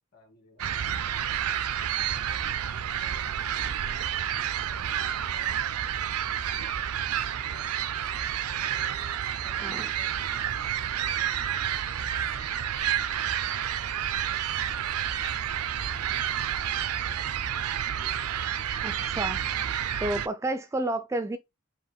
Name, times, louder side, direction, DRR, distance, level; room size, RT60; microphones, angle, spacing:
voice 1, 0.1-1.2 1.8-6.9 7.3-8.0 8.7-11.8, equal, 45° left, 1.9 m, -57 dB
sound 1, 0.6-20.3, right 9 dB, 85° right, 0.4 m, -30 dB
voice 2, 18.8-19.4 20.0-21.4, right 1 dB, 15° right, 0.3 m, -30 dB
4.8 x 2.9 x 3.2 m
head